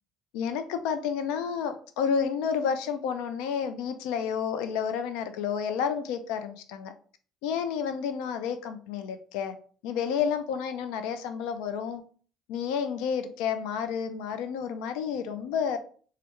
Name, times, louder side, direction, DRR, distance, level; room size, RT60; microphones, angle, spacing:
voice 1, 0.3-6.9 7.4-9.6 9.8-12.0 12.5-15.8, left 7 dB, 85° left, 0.3 m, -30 dB
3.2 x 2.3 x 3.0 m
supercardioid pair, 90°, 0 cm